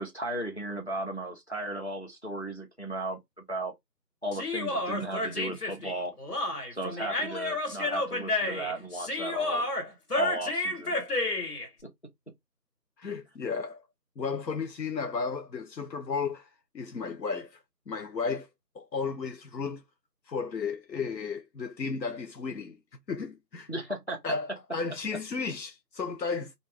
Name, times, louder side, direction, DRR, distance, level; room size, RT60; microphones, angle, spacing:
voice 1, 0.0-3.2 3.5-3.7 4.2-6.2 6.7-9.6 10.2-11.2 23.7-24.2, right 1 dB, 40° left, 0.7 m, -35 dB
Human voice, 4.3-11.7, left 2 dB, 65° left, 1.4 m, -31 dB
voice 2, 13.0-13.8 14.2-16.5 16.7-17.6 17.9-18.5 18.7-19.8 20.3-22.8 23.1-23.7 24.2-26.5, left 5 dB, 90° left, 0.8 m, -33 dB
2.6 x 2.3 x 3.3 m
figure-of-eight pair, 180°, 50 cm